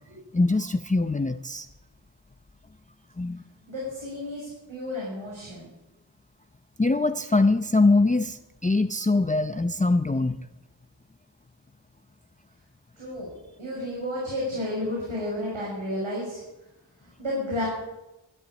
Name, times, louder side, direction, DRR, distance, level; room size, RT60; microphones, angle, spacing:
voice 1, 0.3-1.7 3.2-3.4 6.8-10.4, left 3 dB, 15° left, 9 dB, 0.6 m, -23 dB
voice 2, 3.7-5.7 13.0-13.3 13.6-16.4 17.0-17.7, left 1 dB, 85° right, -5 dB, 6.2 m, -32 dB
13.5 x 10.5 x 9.8 m, 0.99 s
wide cardioid pair, 60°, 46 cm